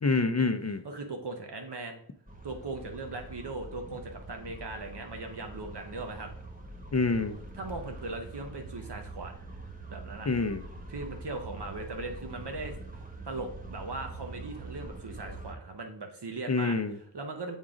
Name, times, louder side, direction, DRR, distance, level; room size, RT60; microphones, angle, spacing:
voice 1, 0.0-0.8 6.9-7.4 10.3-10.6 16.5-17.0, left 3 dB, 40° left, 9 dB, 0.5 m, -27 dB
voice 2, 0.8-2.0 2.4-6.3 7.6-9.3 9.9-10.3 10.9-12.7 13.3-16.8 17.1-17.6, right 3 dB, 70° right, 4 dB, 0.9 m, -39 dB
sound 1, 2.3-15.5, right 2 dB, 20° right, 1.1 m, -44 dB
7.2 x 3.7 x 5.0 m, 0.62 s
wide cardioid pair, 55°, 42 cm